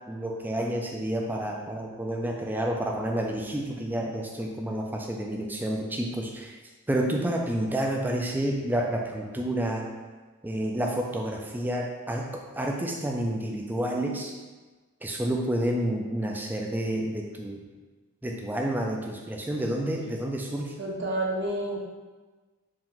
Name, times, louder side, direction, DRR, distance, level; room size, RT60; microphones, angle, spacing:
voice 1, 0.1-6.6 6.9-9.9 10.4-14.3 15.0-17.6 18.2-20.7, right 1 dB, 10° right, 0 dB, 0.3 m, -29 dB
voice 2, 20.8-21.8, right 1 dB, 50° right, -3 dB, 0.8 m, -29 dB
4.6 x 2.6 x 3.7 m, 1.3 s
head